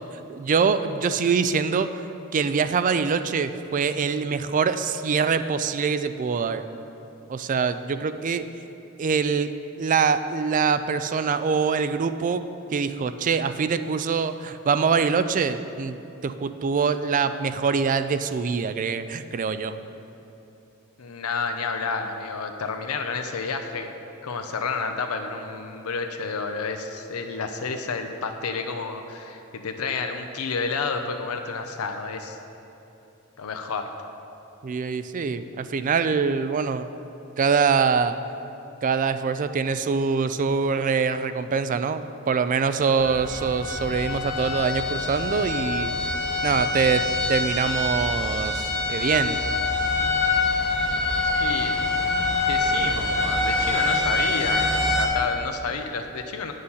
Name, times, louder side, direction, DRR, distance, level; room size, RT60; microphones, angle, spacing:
voice 1, 0.3-2.0 2.3-6.6 7.3-8.5 9.0-9.5 9.8-12.4 12.7-19.8 34.6-36.9 37.4-38.2 38.8-45.9 46.4-49.4, right 5 dB, 35° right, 11 dB, 0.3 m, -24 dB
voice 2, 21.0-23.9 24.2-32.4 33.4-33.9 51.2-51.8 52.5-56.5, left 4 dB, 90° left, 5 dB, 0.6 m, -30 dB
sound 1, 43.0-55.1, left 2 dB, ahead, 1.2 m, -25 dB
9.5 x 6.5 x 5.6 m, 2.9 s
head